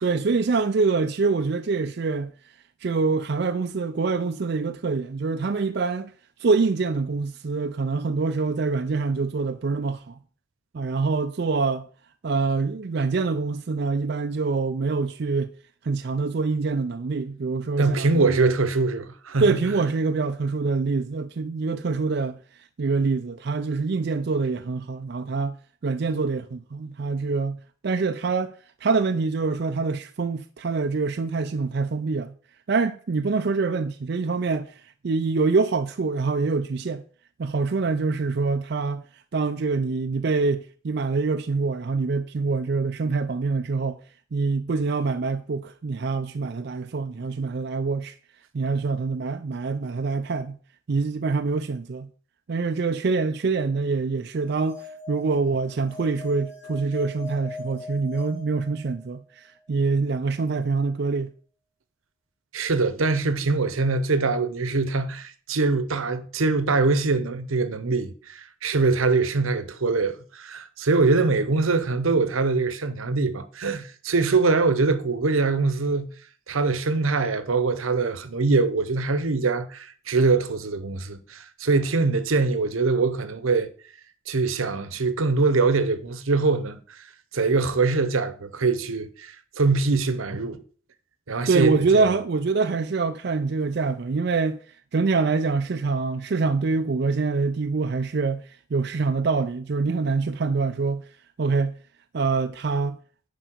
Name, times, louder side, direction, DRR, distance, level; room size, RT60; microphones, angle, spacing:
voice 1, 0.0-2.3 2.8-6.1 6.4-10.2 10.7-11.9 12.2-15.5 15.8-18.5 19.4-22.4 22.8-25.6 25.8-27.6 27.8-28.5 28.8-32.3 32.7-34.7 35.0-37.0 37.4-39.0 39.3-44.0 44.3-48.2 48.5-50.6 50.9-52.1 52.5-61.3 91.5-94.6 94.9-98.4 98.7-101.0 101.4-101.7 102.1-103.0, right 4 dB, 55° right, 0.4 m, -25 dB
voice 2, 17.8-19.6 62.5-76.1 76.5-83.7 84.3-87.0 87.3-90.6 91.3-92.1, right 3 dB, 85° right, 0.9 m, -23 dB
sound 1, 54.4-59.3, left 3 dB, 40° left, 2.6 m, -41 dB
10.0 x 5.3 x 4.5 m
head